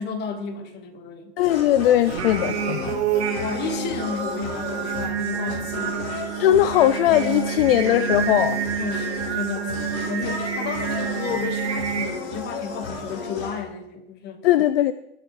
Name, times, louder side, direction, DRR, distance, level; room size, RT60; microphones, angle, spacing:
voice 1, 0.0-1.3 3.0-6.4 8.8-14.5, left 5 dB, 30° left, 1.8 m, -33 dB
sound 1, 1.4-13.6, left 4 dB, 75° left, 4.1 m, -34 dB
voice 2, 1.4-3.0 6.4-8.6 14.4-14.9, left 12 dB, 55° left, 0.6 m, -19 dB
Singing, 2.0-12.1, right 8 dB, 70° right, 3.0 m, -28 dB
21.0 x 10.0 x 3.3 m
hypercardioid pair, 125°, 34 cm